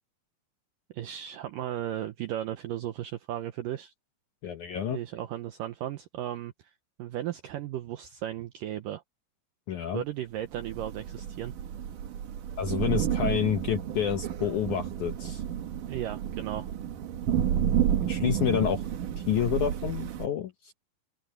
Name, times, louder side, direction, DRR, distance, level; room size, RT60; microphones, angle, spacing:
voice 1, 0.9-3.9 4.9-6.7 7.0-9.0 9.9-11.5 15.9-16.7, right 12 dB, 80° right, 1.9 m, -35 dB
voice 2, 4.4-5.0 9.7-10.0 12.6-15.4 18.1-18.8 19.2-20.7, left 9 dB, 75° left, 1.8 m, -29 dB
Thunder / Rain, 10.5-20.3, right 10 dB, 60° right, 2.7 m, -31 dB
open air
omnidirectional pair, 4.9 m